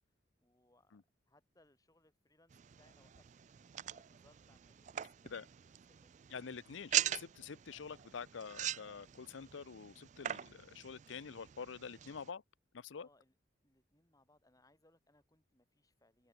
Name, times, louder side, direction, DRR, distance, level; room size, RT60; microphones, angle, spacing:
voice 1, 0.4-2.5 2.8-5.5 5.9-6.2 13.0-13.4 13.6-16.3, left 1 dB, 20° left, 5.2 m, -71 dB
sound 1, 2.5-12.3, right 11 dB, 40° right, 0.3 m, -42 dB
voice 2, 6.3-12.4 12.7-13.1, left 6 dB, 85° left, 0.6 m, -47 dB
open air
head